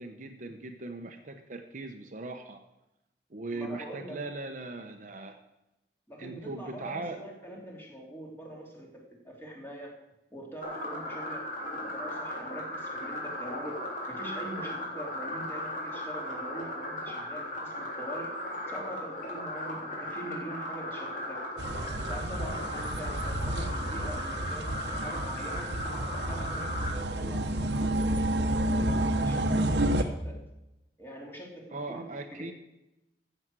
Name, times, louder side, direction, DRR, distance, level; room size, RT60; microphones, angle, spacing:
voice 1, 0.0-2.6 3.3-5.4 6.2-7.2 31.7-32.5, right 2 dB, 45° right, 5 dB, 0.9 m, -39 dB
voice 2, 3.5-4.2 6.1-9.9 10.3-11.4 11.7-13.8 14.1-18.3 18.7-21.4 21.8-25.7 26.1-30.4 31.0-32.5, right 1 dB, 15° left, -2 dB, 3.1 m, -43 dB
sound 1, 10.6-26.9, left 1 dB, 50° left, 3.7 m, -37 dB
sound 2, 21.6-30.0, right 1 dB, 75° right, 1.1 m, -30 dB
14.0 x 8.0 x 6.2 m, 0.92 s
head